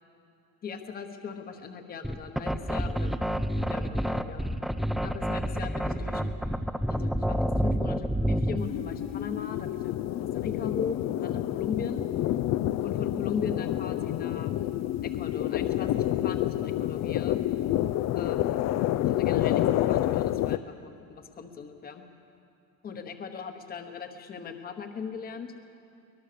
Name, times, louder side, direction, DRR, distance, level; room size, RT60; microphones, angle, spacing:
voice 1, 0.6-3.1 3.7-4.5 4.8-6.2 6.9-9.9 10.2-12.1 12.8-14.5 15.0-17.4 18.1-18.6 19.0-22.0 22.8-25.5, left 6 dB, 25° left, 6 dB, 1.1 m, -39 dB
sound 1, 2.0-8.7, equal, ahead, 0.4 m, -28 dB
sound 2, 8.6-20.6, left 13 dB, 50° left, 0.5 m, -28 dB
23.5 x 20.0 x 6.8 m, 2.6 s
cardioid pair, 175°, 34 cm